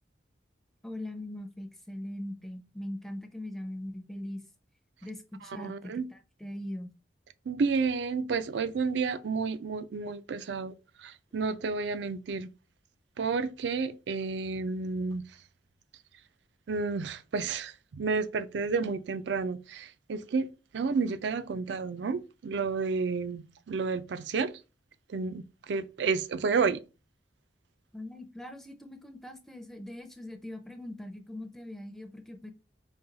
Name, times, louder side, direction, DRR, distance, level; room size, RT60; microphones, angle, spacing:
voice 1, 0.8-4.4 5.0-6.9 27.9-32.5, left 1 dB, ahead, 0.5 m, -41 dB
voice 2, 5.6-6.0 7.5-10.7 11.0-12.5 13.2-15.2 16.7-20.5 20.7-24.5 25.1-26.8, right 4 dB, 75° right, 0.4 m, -31 dB
5.2 x 2.3 x 3.9 m
head